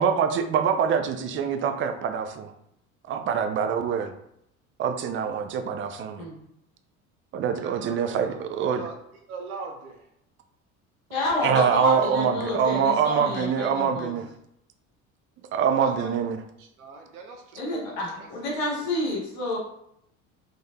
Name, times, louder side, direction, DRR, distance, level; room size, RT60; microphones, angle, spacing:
voice 1, 0.0-2.5 3.1-4.1 4.8-6.2 7.3-8.8 11.4-14.3 15.5-16.4, right 7 dB, 30° right, 7 dB, 0.4 m, -25 dB
voice 2, 7.5-8.9 9.3-10.1 11.8-12.0 15.8-16.2 16.6-17.6 17.8-18.3 18.8-18.9, right 4 dB, 80° right, 2 dB, 0.5 m, -41 dB
voice 3, 11.1-14.1 17.6-19.6, left 1 dB, 65° left, -4 dB, 1.5 m, -29 dB
3.8 x 2.5 x 2.2 m, 0.75 s
hypercardioid pair, 65°, 43 cm